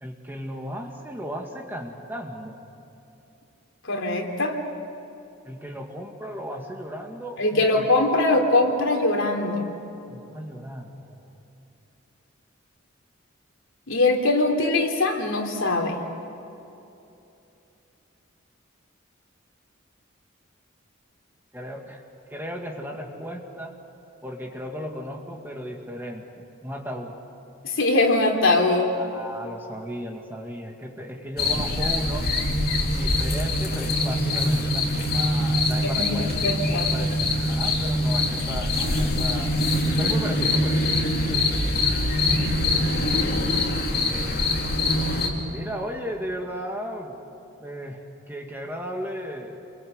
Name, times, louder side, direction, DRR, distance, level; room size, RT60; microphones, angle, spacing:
voice 1, 0.0-2.6 5.4-7.9 10.1-11.3 21.5-22.0 22.3-23.8 24.2-27.1 28.9-32.3 32.8-39.6 39.8-41.6 43.9-44.6 45.5-47.2 47.6-49.5, equal, 10° right, 1 dB, 2.1 m, -35 dB
voice 2, 3.8-4.6 7.4-9.6 13.9-16.0 27.6-28.9 35.8-36.9 42.1-42.4 43.2-43.3, left 2 dB, 70° left, 2 dB, 3.2 m, -22 dB
sound 1, 31.4-45.3, left 1 dB, 45° left, 3.3 m, -23 dB
28.0 x 23.5 x 8.1 m, 2.8 s
head